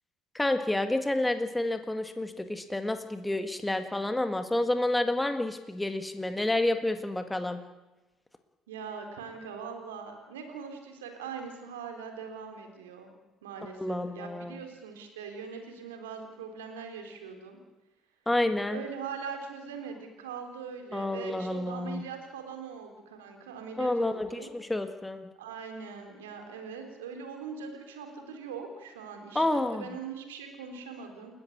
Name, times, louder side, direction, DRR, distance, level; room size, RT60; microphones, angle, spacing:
voice 1, 0.3-7.6 13.8-14.6 18.3-18.8 20.9-22.1 23.8-25.3 29.4-29.9, left 1 dB, 10° left, 8 dB, 1.7 m, -29 dB
voice 2, 8.7-13.1 13.4-17.6 18.7-24.5 25.4-31.3, right 6 dB, 75° right, 4 dB, 3.7 m, -41 dB
29.5 x 14.0 x 8.6 m, 1.1 s
figure-of-eight pair, 55°, 0 cm